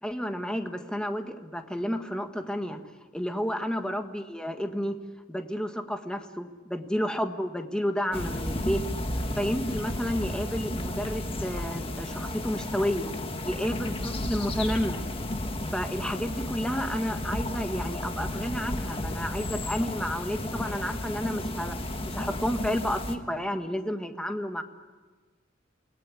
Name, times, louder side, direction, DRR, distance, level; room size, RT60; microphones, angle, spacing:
voice 1, 0.0-2.8 3.1-5.0 5.3-8.8 9.4-13.1 13.4-15.0 15.7-21.8 22.1-24.6, equal, 5° left, 6 dB, 1.5 m, -31 dB
sound 1, 8.1-23.2, left 1 dB, 30° left, 1.6 m, -33 dB
28.5 x 19.0 x 9.7 m, 1.4 s
head